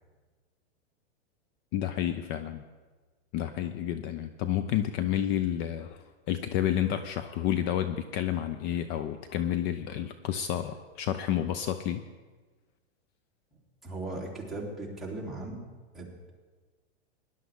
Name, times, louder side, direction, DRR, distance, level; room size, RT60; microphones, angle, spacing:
voice 1, 1.7-2.6 3.3-12.0, left 11 dB, 35° left, 10 dB, 0.5 m, -30 dB
voice 2, 13.5-15.6 15.9-16.1, right 2 dB, ahead, -6 dB, 3.1 m, -38 dB
19.0 x 11.0 x 3.7 m, 1.4 s
hypercardioid pair, 125°, 33 cm